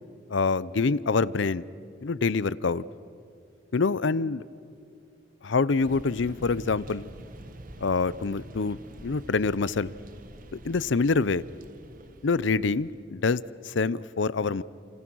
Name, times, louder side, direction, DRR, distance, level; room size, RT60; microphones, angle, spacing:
voice 1, 0.3-1.6 2.0-2.8 3.7-4.4 5.4-7.1 7.8-9.9 10.6-11.4 12.2-14.6, left 4 dB, 65° left, 18 dB, 0.6 m, -26 dB
sound 1, 5.8-13.0, right 1 dB, 40° right, 1.2 m, -46 dB
29.5 x 27.5 x 6.2 m, 2.4 s
head